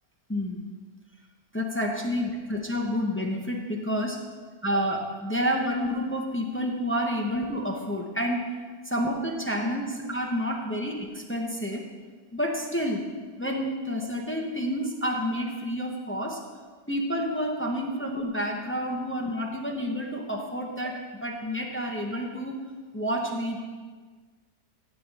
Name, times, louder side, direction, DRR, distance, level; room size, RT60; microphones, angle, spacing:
voice 1, 0.3-0.6 1.5-4.2 4.6-8.6 8.8-11.9 12.3-13.1 13.4-16.4 16.9-22.6 22.9-23.6, equal, 10° left, 1 dB, 0.5 m, -29 dB
15.5 x 8.5 x 3.4 m, 1.5 s
omnidirectional pair, 1.8 m